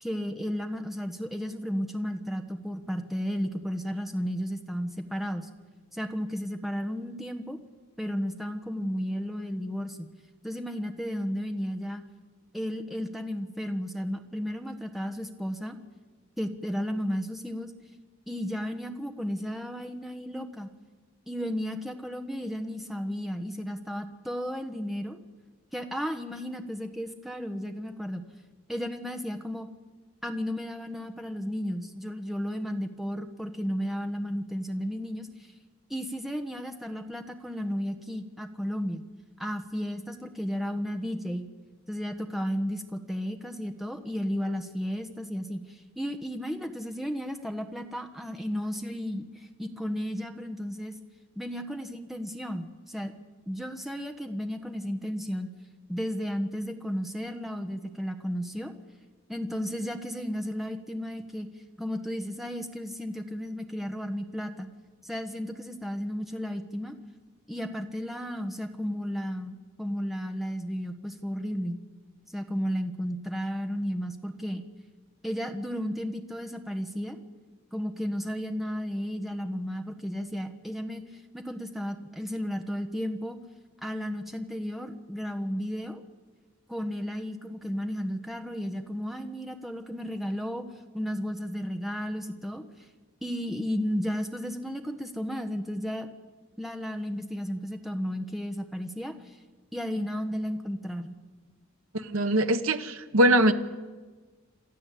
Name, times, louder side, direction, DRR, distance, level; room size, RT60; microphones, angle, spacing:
voice 1, 0.0-5.5 5.9-7.6 8.0-10.1 10.4-12.0 12.5-15.8 16.4-17.7 18.3-20.7 21.3-25.2 25.7-28.2 28.7-29.7 30.2-35.3 35.9-39.0 39.4-41.5 41.9-49.2 49.6-50.9 51.4-53.1 53.5-55.5 55.9-58.7 59.3-61.5 61.8-64.7 65.0-66.9 67.5-71.8 72.3-74.6 75.2-77.2 77.7-81.0 81.3-83.4 83.8-86.0 86.7-90.6 90.9-92.6 93.2-96.1 96.6-99.1 99.7-101.2, equal, ahead, 5 dB, 1.3 m, -33 dB
voice 2, 101.9-103.5, right 1 dB, 75° right, 9 dB, 1.2 m, -22 dB
28.0 x 13.0 x 8.5 m, 1.4 s
head